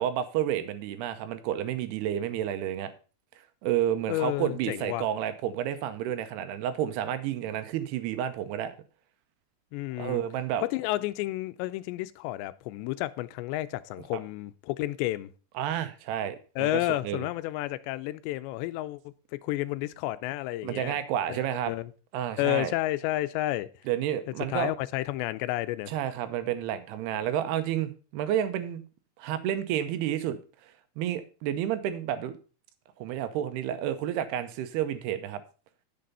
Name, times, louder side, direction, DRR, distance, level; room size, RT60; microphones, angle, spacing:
voice 1, 0.0-2.9 3.6-8.7 10.0-10.6 15.6-17.3 20.6-21.7 22.1-22.7 23.9-24.7 25.9-28.8 29.2-30.4 30.6-30.7 31.0-32.4 33.0-35.4, right 10 dB, 80° right, 2.7 m, -30 dB
voice 2, 4.1-5.1 9.7-10.2 10.6-15.3 16.6-21.0 21.3-21.4 21.7-21.9 22.4-23.7 24.5-25.9, left 16 dB, 85° left, 2.9 m, -31 dB
10.5 x 6.8 x 5.4 m
omnidirectional pair, 4.9 m